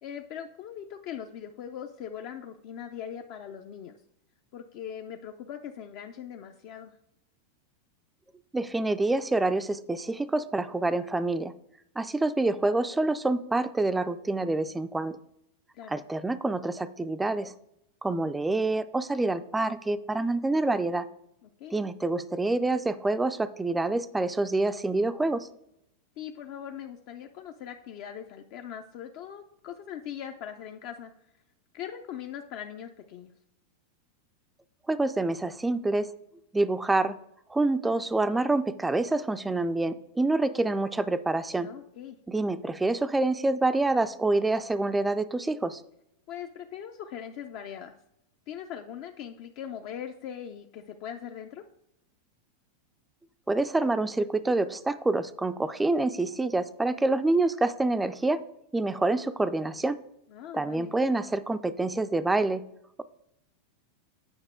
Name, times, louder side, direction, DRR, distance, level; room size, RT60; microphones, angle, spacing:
voice 1, 0.0-4.0 4.5-6.9 15.7-16.0 21.4-21.8 26.2-31.1 31.7-33.3 41.6-42.2 46.3-48.0 48.5-51.6 60.3-60.9, left 9 dB, 55° left, 5 dB, 0.5 m, -40 dB
voice 2, 8.5-11.5 12.0-15.2 15.9-17.5 18.0-21.1 21.7-25.5 34.9-36.1 36.5-37.2 37.5-41.7 42.3-45.8 53.5-58.4 58.7-60.0 60.5-62.6, right 2 dB, 10° right, 12 dB, 0.4 m, -27 dB
8.8 x 5.3 x 3.7 m, 0.80 s
supercardioid pair, 130°, 0 cm